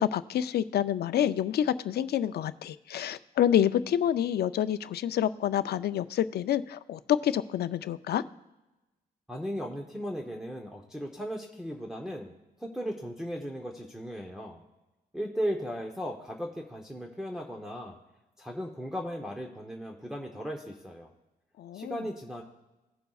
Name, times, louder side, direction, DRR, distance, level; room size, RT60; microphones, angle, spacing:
voice 1, 0.0-8.2 21.6-22.0, left 10 dB, 80° left, 13 dB, 0.4 m, -28 dB
voice 2, 9.3-12.3 12.6-14.6 15.1-18.0 18.4-21.1 21.7-22.4, equal, 5° right, -1 dB, 0.8 m, -36 dB
18.0 x 6.7 x 2.4 m, 1.0 s
wide cardioid pair, 120°, 16 cm